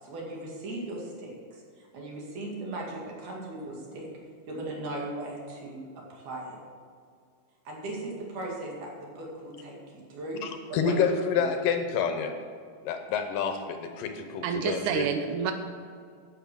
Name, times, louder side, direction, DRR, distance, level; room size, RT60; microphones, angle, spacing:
voice 1, 0.0-4.1 4.5-6.6 7.6-9.8 10.1-11.0 11.3-11.5, right 2 dB, 55° right, -2 dB, 3.5 m, -38 dB
voice 2, 10.4-12.3 12.9-15.1, left 6 dB, 75° left, 6 dB, 2.3 m, -28 dB
voice 3, 14.4-15.5, right 7 dB, 85° right, 6 dB, 1.7 m, -28 dB
10.5 x 9.0 x 6.2 m, 2.1 s
omnidirectional pair, 4.5 m